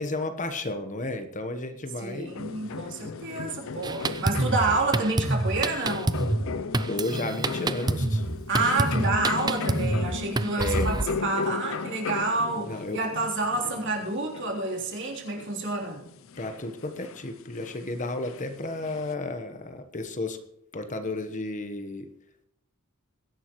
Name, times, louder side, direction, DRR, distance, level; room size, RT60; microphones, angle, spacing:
voice 1, 0.0-2.3 6.8-8.2 10.6-10.9 12.7-13.0 16.4-20.4 20.7-22.1, left 2 dB, 35° left, 8 dB, 1.1 m, -32 dB
voice 2, 2.0-6.2 8.5-16.0, right 3 dB, 55° right, -1 dB, 3.5 m, -29 dB
sound 1, 2.3-19.1, left 5 dB, 65° left, 0.6 m, -36 dB
Drum kit, 3.8-11.1, right 2 dB, 20° right, 0.5 m, -27 dB
21.5 x 11.0 x 3.1 m, 0.81 s
head